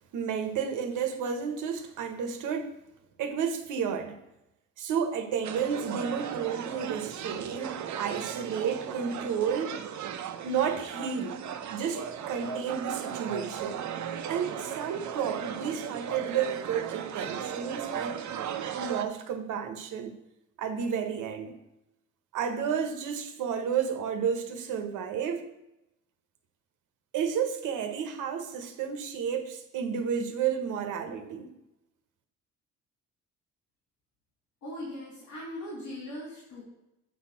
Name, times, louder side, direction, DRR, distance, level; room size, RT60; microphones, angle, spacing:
voice 1, 0.1-2.8 3.2-4.2 4.8-9.8 10.4-11.4 11.7-13.8 14.3-18.3 18.8-20.2 20.6-21.6 22.3-25.4 27.1-31.5, right 7 dB, 85° right, 1.1 m, -31 dB
sound 1, 5.4-19.1, right 8 dB, 70° right, 0.8 m, -36 dB
voice 2, 34.6-36.6, left 1 dB, 85° left, 3.3 m, -39 dB
8.2 x 4.3 x 5.7 m
cardioid pair, 90°, 30 cm